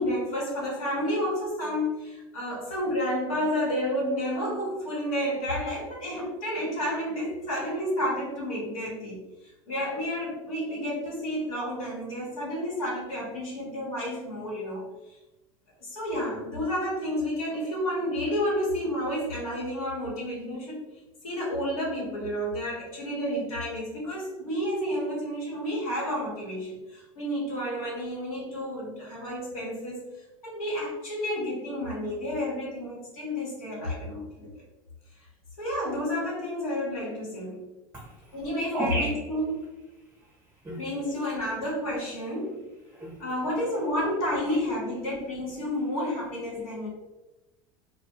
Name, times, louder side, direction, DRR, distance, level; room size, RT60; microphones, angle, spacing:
voice 1, 0.0-9.2 9.7-14.9 15.8-20.8 21.2-30.0 30.4-34.5 35.6-37.7 38.3-39.7 40.8-42.6 43.2-46.9, equal, 75° left, -4 dB, 1.1 m, -30 dB
voice 2, 37.9-38.4 38.7-39.3 40.2-40.3 40.6-40.9 42.9-43.2 44.5-44.6, right 1 dB, 10° right, -4 dB, 0.6 m, -33 dB
2.1 x 2.1 x 2.9 m, 1.0 s
hypercardioid pair, 80°, 18 cm